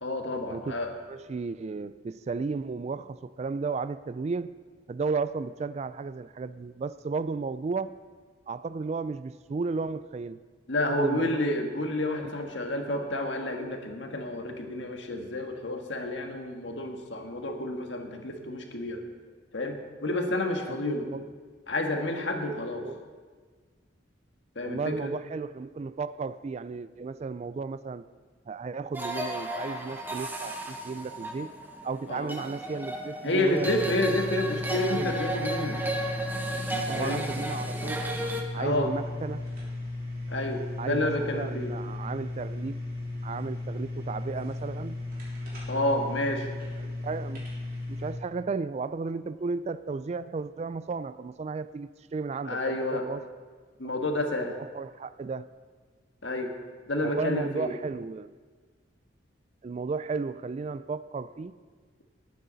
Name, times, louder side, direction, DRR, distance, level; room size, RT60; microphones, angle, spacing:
voice 1, 0.0-0.9 10.7-19.0 19.5-21.1 21.7-22.9 24.6-25.1 32.1-32.3 33.2-35.8 36.7-37.2 38.6-38.9 40.3-41.7 45.7-46.5 52.5-53.1 53.8-54.5 56.2-56.5 56.9-57.7, left 1 dB, 75° left, 1.6 m, -30 dB
voice 2, 1.1-4.6 4.9-8.0 8.5-10.4 10.9-11.4 20.7-21.3 22.8-23.0 24.6-28.1 28.5-31.5 31.8-33.7 34.7-35.1 36.9-38.0 38.5-39.4 40.8-42.8 43.2-45.0 46.9-47.5 47.9-53.3 54.6-55.5 57.0-58.3 59.6-61.6, right 4 dB, 35° right, 0.3 m, -34 dB
sound 1, 28.9-38.4, right 1 dB, 10° right, 1.1 m, -34 dB
sound 2, 33.5-48.1, left 2 dB, 50° right, 3.6 m, -36 dB
19.5 x 9.5 x 4.0 m
head